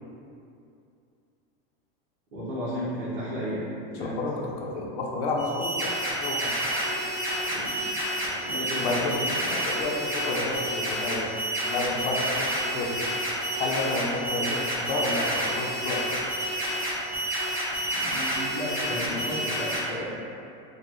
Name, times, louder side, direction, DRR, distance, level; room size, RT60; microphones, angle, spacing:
voice 1, 2.3-3.6 3.9-4.1 7.5-7.8 8.2-9.5 17.9-20.2, equal, 50° right, -12 dB, 1.1 m, -34 dB
voice 2, 3.9-5.9 6.2-6.5 8.8-9.3 9.7-10.0 10.2-11.3 11.7-12.9 13.6-16.0, left 2 dB, 75° left, -2 dB, 0.8 m, -30 dB
sound 1, 5.4-19.8, right 1 dB, 10° right, 0.9 m, -29 dB
4.5 x 2.4 x 3.1 m, 2.6 s
supercardioid pair, 165°, 31 cm